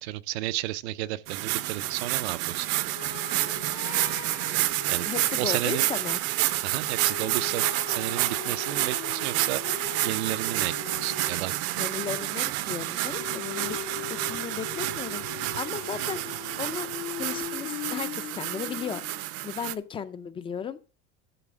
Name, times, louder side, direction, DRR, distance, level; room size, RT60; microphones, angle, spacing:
voice 1, 0.0-2.7 4.9-5.1 5.4-5.8 6.6-9.6 10.0-11.5, right 15 dB, 90° right, 0.6 m, -32 dB
sound 1, 1.3-19.7, right 16 dB, 50° right, 0.5 m, -29 dB
sound 2, 2.9-5.9 7.0-11.7 13.2-19.3, left 14 dB, 80° left, 0.8 m, -41 dB
voice 2, 5.1-6.2 11.8-13.8 14.1-19.0 19.4-20.8, left 7 dB, 15° left, 0.3 m, -35 dB
11.0 x 4.1 x 6.1 m
supercardioid pair, 150°, 32 cm